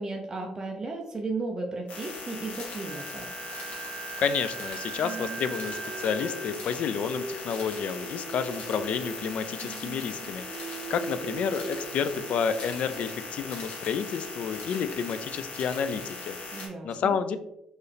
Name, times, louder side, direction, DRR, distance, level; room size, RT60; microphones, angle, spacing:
voice 1, 0.0-3.3 16.5-17.2, right 3 dB, 25° right, 0 dB, 0.6 m, -34 dB
sound 1, 1.9-16.7, left 3 dB, 90° left, 1.6 m, -39 dB
Wind instrument woodwind instrument, 2.8-6.5, right 7 dB, 30° left, 1.3 m, -40 dB
voice 2, 4.2-17.4, left 7 dB, 65° left, 12 dB, 0.4 m, -30 dB
Singing, 5.0-9.3 9.6-15.6, right 4 dB, 80° right, 0.5 m, -42 dB
4.5 x 3.1 x 3.3 m, 0.85 s
cardioid pair, 125°, 2 cm